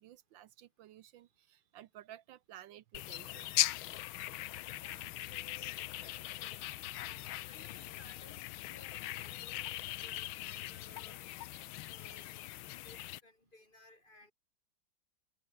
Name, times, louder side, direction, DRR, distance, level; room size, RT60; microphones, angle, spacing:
voice 1, 0.0-3.5 11.6-11.7, right 12 dB, 75° right, 1.4 m, -55 dB
sound 1, 2.9-13.2, left 15 dB, 90° left, 1.6 m, -40 dB
voice 2, 4.8-5.8 6.0-11.3 11.9-12.3 12.6-14.3, left 2 dB, 25° left, 2.9 m, -60 dB
omnidirectional pair, 2.2 m